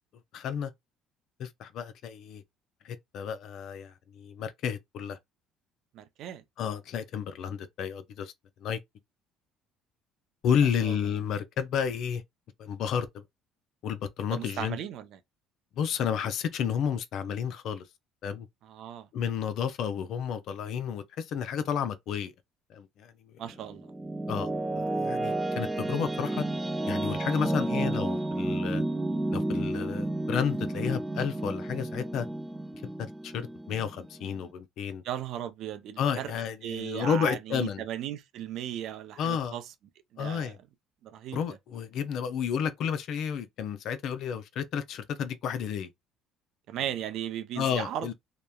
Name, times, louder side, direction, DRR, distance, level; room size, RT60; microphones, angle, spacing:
voice 1, 0.3-0.7 1.4-2.4 2.8-5.2 6.6-8.3 8.6-8.8 10.4-12.2 12.6-13.2 13.8-14.8 15.8-17.9 18.2-18.5 19.1-22.3 22.7-23.1 24.3-26.4 26.9-28.8 29.3-32.3 33.0-35.0 36.0-37.8 39.2-39.6 40.2-40.6 41.3-45.9 47.5-48.1, left 7 dB, 65° left, 0.5 m, -31 dB
voice 2, 5.9-6.4 10.8-11.0 14.3-15.2 18.6-19.1 23.4-23.9 35.0-36.3 36.6-39.6 40.1-40.5 41.0-41.4 46.7-48.1, right 11 dB, 65° right, 0.5 m, -36 dB
sound 1, 23.5-34.5, right 1 dB, 15° right, 0.5 m, -31 dB
2.8 x 2.1 x 2.3 m
supercardioid pair, 80°, 0 cm